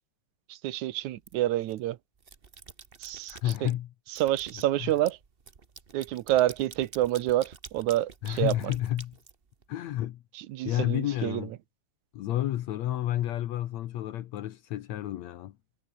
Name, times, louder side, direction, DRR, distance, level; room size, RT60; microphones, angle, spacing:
voice 1, 0.5-2.0 3.0-3.7 4.1-5.2 5.9-8.5 10.3-11.5, right 14 dB, 80° right, 2.3 m, -28 dB
sound 1, 1.2-1.8 2.2-3.8 4.2-9.9, right 5 dB, 65° right, 0.5 m, -48 dB
voice 2, 3.3-3.9 4.8-4.9 8.2-9.2 9.7-10.2 10.7-11.5 12.1-15.6, left 13 dB, 75° left, 2.2 m, -30 dB
omnidirectional pair, 3.3 m